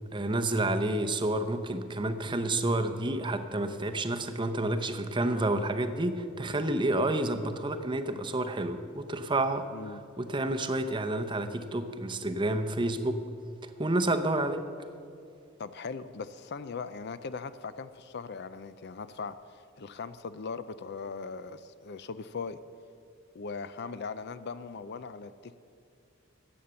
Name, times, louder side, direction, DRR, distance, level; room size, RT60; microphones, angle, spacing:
voice 1, 0.1-9.7 10.2-13.2 13.6-14.6, right 2 dB, 20° right, 7 dB, 0.7 m, -29 dB
voice 2, 15.6-22.6 23.3-25.5, left 5 dB, 50° left, 13 dB, 0.5 m, -39 dB
14.5 x 8.8 x 6.9 m, 2.4 s
head